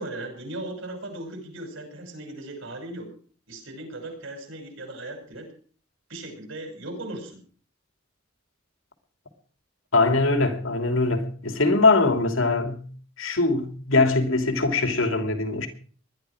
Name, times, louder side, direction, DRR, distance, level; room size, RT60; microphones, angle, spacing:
voice 1, 0.0-3.1 3.5-5.5 6.1-7.4, right 1 dB, 75° right, 6.1 m, -37 dB
voice 2, 9.9-12.9 13.2-15.7, left 3 dB, 85° left, 2.9 m, -22 dB
20.0 x 12.0 x 5.1 m
head